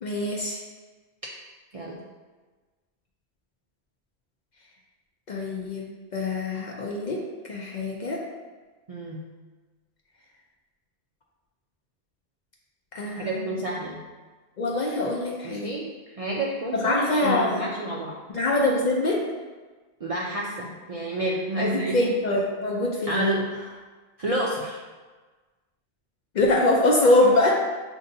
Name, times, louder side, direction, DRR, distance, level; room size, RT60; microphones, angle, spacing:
voice 1, 0.0-0.6 5.3-8.2 12.9-13.6 14.6-15.8 16.7-17.7 18.3-19.2 21.6-23.3 26.3-27.5, left 2 dB, 55° left, -1 dB, 0.5 m, -24 dB
voice 2, 8.9-9.3 13.2-14.0 15.4-18.2 20.0-22.0 23.1-23.8 24.2-24.8, right 1 dB, 55° right, -4 dB, 0.4 m, -29 dB
6.3 x 2.6 x 2.6 m, 1.3 s
omnidirectional pair, 1.1 m